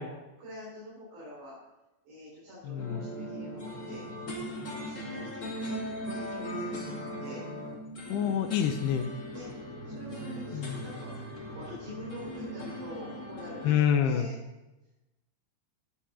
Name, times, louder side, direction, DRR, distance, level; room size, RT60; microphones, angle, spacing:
voice 1, 0.0-1.6 2.0-4.1 4.5-7.5 9.3-9.5 9.8-14.4, left 1 dB, 75° right, -9 dB, 6.6 m, -46 dB
voice 2, 2.6-3.0 8.1-9.1 10.5-10.8 13.6-14.3, left 8 dB, 75° left, 4 dB, 2.7 m, -27 dB
sound 1, 2.8-13.7, equal, 45° left, 0.9 m, -39 dB
13.0 x 8.9 x 4.3 m, 1.0 s
omnidirectional pair, 5.0 m